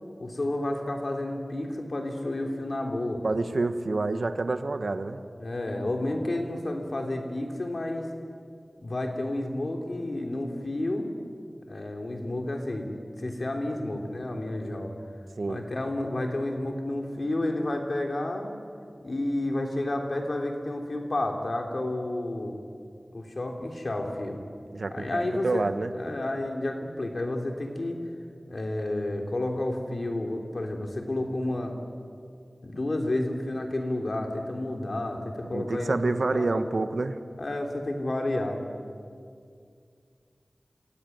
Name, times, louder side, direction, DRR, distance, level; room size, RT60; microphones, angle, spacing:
voice 1, 0.2-3.2 5.4-8.1 8.8-11.1 11.7-12.9 13.2-14.9 15.5-18.5 19.0-22.6 23.1-24.4 24.9-25.6 25.9-28.0 28.5-31.8 32.6-36.6 37.4-38.6, left 1 dB, 65° left, 3 dB, 3.3 m, -31 dB
voice 2, 3.2-5.2 15.4-15.6 24.7-25.1 25.4-25.9 35.4-37.2, right 3 dB, 80° right, 10 dB, 1.3 m, -28 dB
26.5 x 17.5 x 9.4 m, 2.3 s
wide cardioid pair, 55°, 0 cm